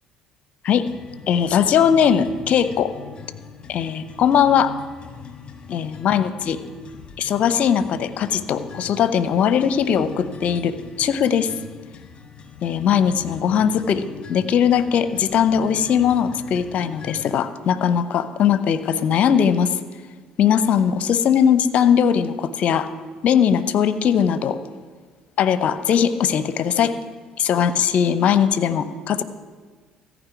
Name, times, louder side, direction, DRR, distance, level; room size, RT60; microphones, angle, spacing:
sound 1, 0.8-17.5, left 7 dB, 35° left, 1.4 m, -41 dB
voice 1, 1.3-2.9 3.7-4.7 5.7-6.6 7.2-11.5 12.6-19.8 20.4-22.9 23.2-24.6 25.4-27.0 27.4-29.2, left 8 dB, 60° left, 13 dB, 0.7 m, -19 dB
14.5 x 5.2 x 9.1 m, 1.4 s
hypercardioid pair, 60°, 3 cm